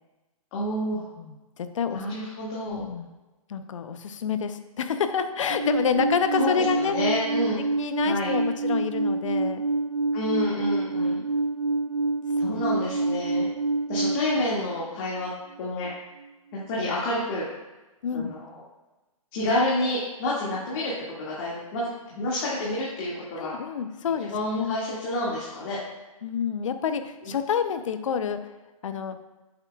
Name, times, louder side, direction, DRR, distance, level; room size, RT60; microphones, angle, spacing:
voice 1, 0.5-1.1 1.9-2.9 6.3-7.6 8.1-8.3 10.1-11.2 12.4-13.5 13.9-15.3 15.6-15.9 16.7-17.4 18.1-18.6 19.3-20.9 21.2-21.8 22.1-23.5 24.2-25.8 27.2-27.3, left 1 dB, 40° left, -6 dB, 2.0 m, -29 dB
voice 2, 1.2-2.0 2.6-3.1 3.5-7.0 7.8-9.6 10.5-10.6 12.4-12.6 18.0-18.3 23.4-24.8 26.2-28.4 28.8-29.2, left 7 dB, 60° left, 9 dB, 0.8 m, -28 dB
Alarm, 5.5-14.4, right 3 dB, 80° right, 1.0 m, -26 dB
9.0 x 7.5 x 2.4 m, 1.1 s
figure-of-eight pair, 130°, 18 cm